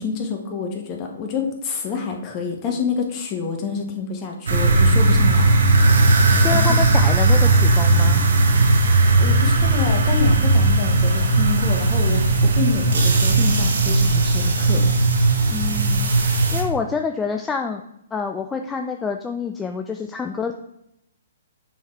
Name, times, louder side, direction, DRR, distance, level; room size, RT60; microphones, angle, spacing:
voice 1, 0.0-5.8 6.5-6.8 9.2-14.8, left 5 dB, 30° left, 2 dB, 1.2 m, -28 dB
sound 1, 4.5-16.6, right 2 dB, 70° right, 1.2 m, -17 dB
voice 2, 6.4-8.2 15.5-17.8 18.1-20.5, left 5 dB, 10° left, 4 dB, 0.3 m, -27 dB
6.1 x 3.9 x 4.5 m, 0.81 s
hypercardioid pair, 130°, 0 cm